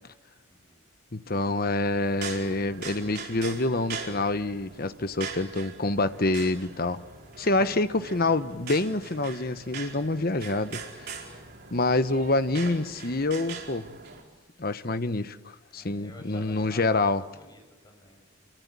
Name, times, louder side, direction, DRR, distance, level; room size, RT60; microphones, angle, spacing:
voice 1, 0.5-0.8 15.7-18.5, left 2 dB, 20° left, 6.8 m, -51 dB
voice 2, 1.1-7.0 7.4-11.3 11.7-13.9 14.6-17.2, left 2 dB, 45° left, 1.1 m, -27 dB
sound 1, 2.0-14.2, right 5 dB, 50° right, 4.9 m, -41 dB
29.5 x 24.0 x 8.4 m
head